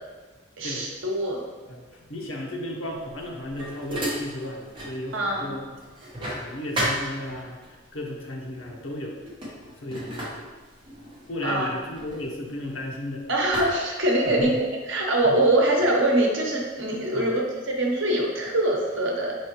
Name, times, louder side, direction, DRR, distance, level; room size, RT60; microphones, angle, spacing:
voice 1, 0.6-1.4 5.1-5.5 11.4-11.7 13.3-14.6 14.9-19.4, right 1 dB, 70° right, -1 dB, 0.9 m, -23 dB
voice 2, 1.6-5.7 6.3-9.2 9.8-10.5 11.3-13.3 14.2-14.6 15.2-15.4 17.1-17.3, left 1 dB, 75° left, -1 dB, 0.8 m, -34 dB
sound 1, 3.0-5.0 5.4-7.7 8.6-8.8 9.1-13.0 13.5-14.7, equal, 25° right, 0.9 m, -34 dB
5.5 x 3.2 x 3.0 m, 1.3 s
head